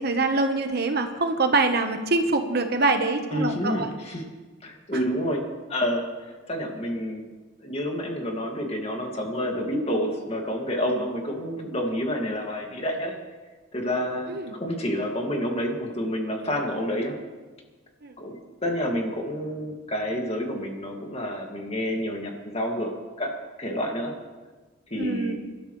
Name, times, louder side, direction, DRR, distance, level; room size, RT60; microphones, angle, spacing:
voice 1, 0.0-3.9 4.9-5.0 14.3-14.5 18.0-18.1 25.0-25.3, right 3 dB, 55° right, 6 dB, 1.1 m, -24 dB
voice 2, 3.3-4.3 4.6-5.4 5.7-7.2 7.6-13.2 13.7-17.2 18.2-22.9 23.2-23.3 23.6-24.1 24.9-25.3, equal, 30° left, 1 dB, 2.1 m, -29 dB
26.0 x 12.0 x 3.2 m, 1.3 s
head